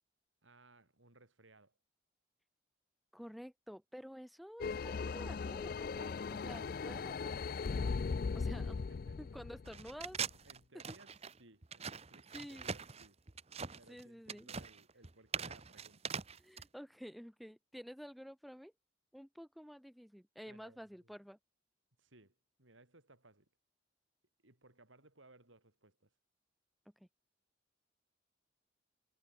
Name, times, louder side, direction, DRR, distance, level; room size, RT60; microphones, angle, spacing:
voice 1, 0.4-1.7 8.6-9.2 10.4-11.1 11.4-13.2 13.8-16.1 20.5-21.1 22.0-23.5 24.4-26.1, right 2 dB, 80° right, 5.0 m, -63 dB
voice 2, 3.1-8.0 8.3-8.8 9.2-10.3 10.9-11.0 12.3-12.7 13.9-14.5 16.4-18.7 19.1-21.4 27.0-27.1, equal, ahead, 4.7 m, -51 dB
sound 1, 4.6-10.3, left 5 dB, 50° left, 0.4 m, -38 dB
sound 2, 9.6-16.6, right 6 dB, 30° right, 1.0 m, -42 dB
head